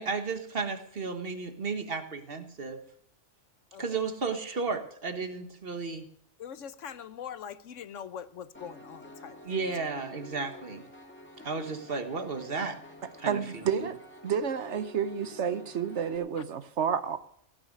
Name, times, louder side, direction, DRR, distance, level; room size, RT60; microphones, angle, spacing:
voice 1, 0.0-2.8 3.8-6.1 9.4-10.8 11.4-12.8 13.2-13.8, right 4 dB, 50° right, 7 dB, 1.6 m, -33 dB
voice 2, 6.4-9.4, left 8 dB, 90° left, 13 dB, 1.2 m, -42 dB
Piano, 8.5-16.2, left 1 dB, 10° left, 1.9 m, -49 dB
voice 3, 13.3-14.0 14.2-17.2, right 7 dB, 70° right, 13 dB, 1.2 m, -30 dB
16.5 x 6.5 x 9.6 m, 0.66 s
omnidirectional pair, 1.3 m